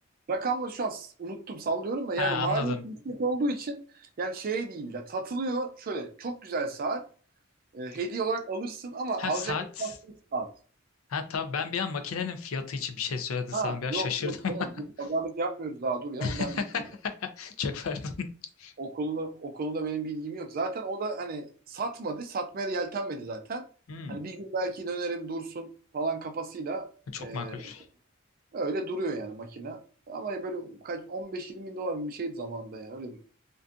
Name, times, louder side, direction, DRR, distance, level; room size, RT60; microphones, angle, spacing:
voice 1, 0.3-7.0 7.7-10.5 13.5-14.7 15.0-16.6 18.8-23.6 24.1-26.9 27.2-27.6 28.5-29.8 30.1-33.2, right 3 dB, 45° right, 0.4 m, -33 dB
voice 2, 2.2-2.8 9.2-10.0 11.1-14.4 16.2-16.6 17.0-18.1 18.6-18.7 23.9-24.2 27.1-27.9, left 5 dB, 80° left, 0.5 m, -32 dB
2.5 x 2.3 x 2.4 m
head